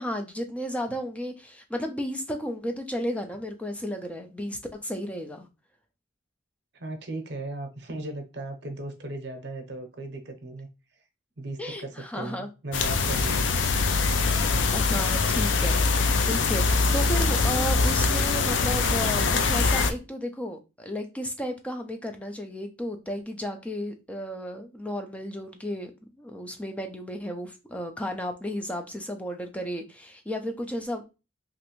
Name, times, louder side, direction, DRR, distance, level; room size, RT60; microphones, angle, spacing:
voice 1, 0.0-5.5 11.6-12.5 14.7-25.9 26.2-31.0, equal, 5° left, 0.3 m, -33 dB
voice 2, 6.7-10.7 11.0-11.1 11.4-13.5, right 2 dB, 60° right, 0.7 m, -37 dB
sound 1, 12.7-19.9, left 4 dB, 75° left, 0.4 m, -23 dB
3.1 x 2.5 x 3.0 m
head